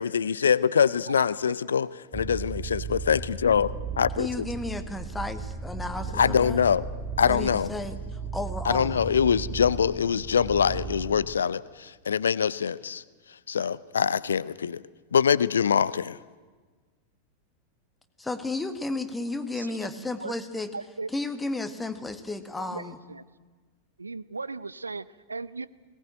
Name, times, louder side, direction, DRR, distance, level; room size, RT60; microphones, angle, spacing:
voice 1, 0.0-1.9 2.1-3.7 4.0-4.4 6.1-6.8 7.2-7.7 8.7-13.0 13.5-14.8 15.1-16.2, left 7 dB, 70° left, 19 dB, 0.6 m, -24 dB
voice 2, 1.2-1.9 19.5-20.3 20.7-21.1 22.7-23.2 24.0-25.7, right 3 dB, 80° right, 18 dB, 0.6 m, -38 dB
sound 1, 2.1-11.3, right 4 dB, 10° right, 2.5 m, -36 dB
voice 3, 4.2-6.6 7.2-9.0 18.2-20.8 21.1-23.0, left 2 dB, 10° left, 9 dB, 1.7 m, -33 dB
20.0 x 18.5 x 9.1 m, 1.4 s
figure-of-eight pair, 90°, 0 cm